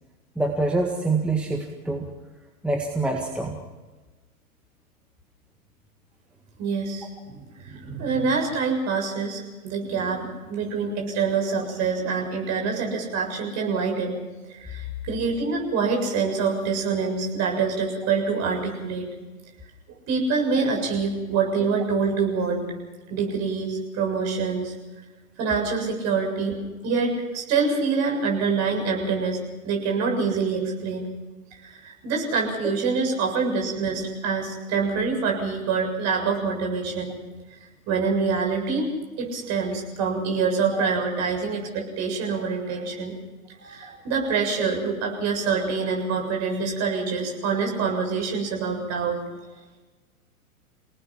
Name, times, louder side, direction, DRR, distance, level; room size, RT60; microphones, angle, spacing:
voice 1, 0.4-2.1 2.6-3.6 20.5-20.6 40.7-40.9 43.8-43.9, right 2 dB, ahead, 1 dB, 1.8 m, -26 dB
voice 2, 6.6-14.2 14.5-19.1 20.1-22.7 23.1-24.7 25.4-26.6 26.8-29.4 29.6-31.1 31.6-37.1 37.9-38.9 39.2-43.1 43.6-49.2, right 5 dB, 35° right, 1 dB, 7.5 m, -26 dB
29.0 x 18.5 x 6.0 m, 1.2 s
hypercardioid pair, 115°, 44 cm